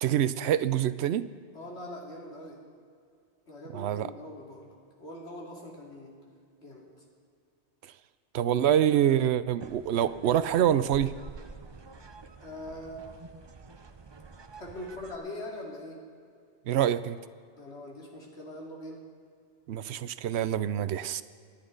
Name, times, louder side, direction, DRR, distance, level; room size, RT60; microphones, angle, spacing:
voice 1, 0.0-1.3 3.7-4.1 8.3-11.1 16.7-17.2 19.7-21.2, right 10 dB, 70° right, 14 dB, 0.8 m, -26 dB
voice 2, 1.5-2.6 3.5-6.2 6.6-6.9 12.4-13.4 14.5-16.0 17.6-19.0, left 1 dB, 70° left, -2 dB, 2.9 m, -42 dB
sound 1, 9.6-15.2, right 4 dB, 35° right, 0.5 m, -48 dB
25.0 x 10.5 x 3.9 m, 2.3 s
omnidirectional pair, 1.2 m